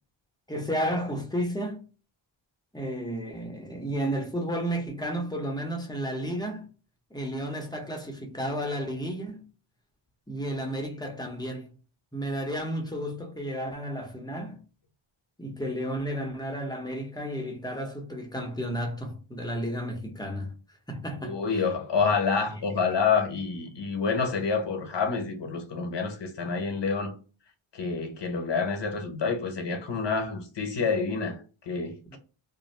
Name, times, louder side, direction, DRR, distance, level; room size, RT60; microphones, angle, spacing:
voice 1, 0.5-1.8 2.7-6.7 7.1-9.5 10.3-11.7 12.1-14.6 15.4-20.5 20.9-21.4 32.1-32.2, equal, 10° left, 0.8 m, -32 dB
voice 2, 21.2-27.1 27.7-32.2, left 5 dB, 60° left, 1.0 m, -28 dB
2.6 x 2.1 x 3.2 m
cardioid pair, 75°, 48 cm